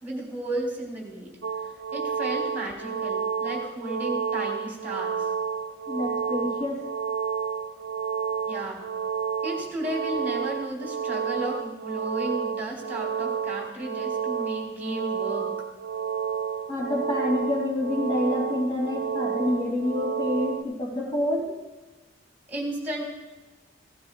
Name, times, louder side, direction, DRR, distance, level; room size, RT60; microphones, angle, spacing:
voice 1, 0.0-1.4 1.9-5.3 8.4-8.8 9.4-15.5 22.5-23.0, right 1 dB, 10° right, -1 dB, 3.1 m, -33 dB
sound 1, 1.4-20.6, right 7 dB, 65° right, 0.5 m, -30 dB
voice 2, 5.9-6.8 16.7-21.5, left 1 dB, 25° left, -4 dB, 2.7 m, -27 dB
16.5 x 14.5 x 2.4 m, 1.2 s
head